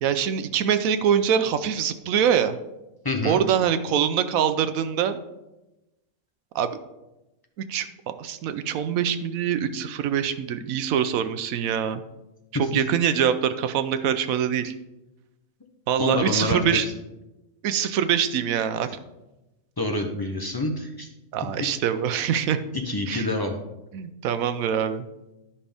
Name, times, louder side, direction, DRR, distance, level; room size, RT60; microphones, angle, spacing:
voice 1, 0.0-2.6 3.2-5.2 6.5-6.8 7.6-12.0 12.6-14.7 15.9-16.9 17.6-18.9 21.3-22.6 23.1-23.3 23.9-25.1, right 8 dB, 85° right, 11 dB, 1.1 m, -24 dB
voice 2, 3.0-3.4 16.0-16.9 19.8-21.1 22.9-23.6, left 2 dB, 25° left, 3 dB, 0.5 m, -27 dB
11.5 x 5.5 x 3.4 m, 0.99 s
omnidirectional pair, 1.4 m